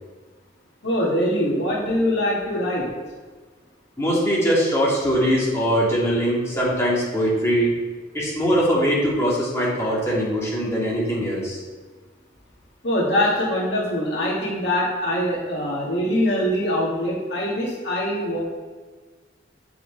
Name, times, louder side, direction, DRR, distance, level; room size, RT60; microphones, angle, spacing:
voice 1, 0.8-2.9 12.8-18.4, equal, 65° left, -4 dB, 2.1 m, -23 dB
voice 2, 4.0-7.7 8.1-11.6, equal, 15° left, -6 dB, 2.5 m, -21 dB
7.9 x 5.9 x 4.7 m, 1.4 s
head